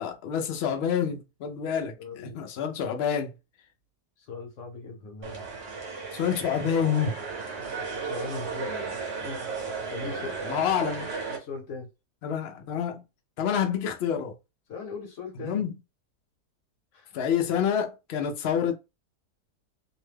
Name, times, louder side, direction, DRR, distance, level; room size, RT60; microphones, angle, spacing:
voice 1, 0.0-3.3 6.1-7.1 10.1-11.1 12.2-13.0 13.4-14.4 15.4-15.7 17.1-18.7, left 8 dB, 90° left, 0.5 m, -28 dB
voice 2, 2.0-2.4 4.2-5.5 8.0-9.4 9.9-10.6 11.3-11.9 14.7-15.7 16.9-17.2, left 4 dB, 55° left, 1.1 m, -39 dB
sound 1, 5.2-11.4, right 4 dB, 50° right, 1.0 m, -35 dB
2.8 x 2.2 x 3.2 m
omnidirectional pair, 1.7 m